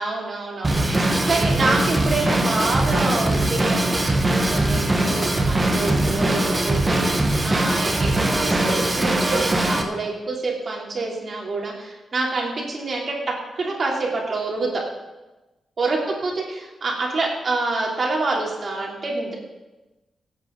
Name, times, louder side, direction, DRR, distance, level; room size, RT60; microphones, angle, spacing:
voice 1, 0.0-8.1 8.4-8.7 8.9-13.2 13.6-14.8 15.8-19.3, right 3 dB, 40° right, -2 dB, 3.3 m, -27 dB
Drum kit / Drum, 0.6-9.8, right 1 dB, 20° right, 1.5 m, -21 dB
25.5 x 8.6 x 4.0 m, 1.1 s
wide cardioid pair, 145°, 0 cm